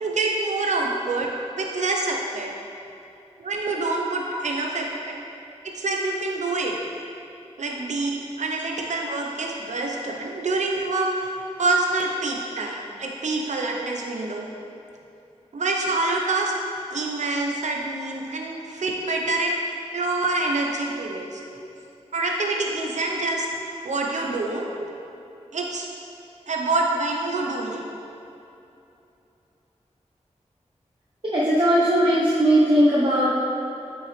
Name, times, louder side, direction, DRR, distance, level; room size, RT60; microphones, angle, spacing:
voice 1, 0.0-1.3 1.6-2.5 3.4-5.2 5.7-6.8 7.6-14.5 15.5-16.5 16.9-21.4 22.1-24.7 25.5-25.9 26.5-27.8, right 2 dB, 75° right, 0 dB, 0.9 m, -26 dB
voice 2, 31.3-33.3, equal, 40° right, -8 dB, 1.1 m, -19 dB
7.8 x 6.1 x 3.3 m, 2.8 s
wide cardioid pair, 70°, 12 cm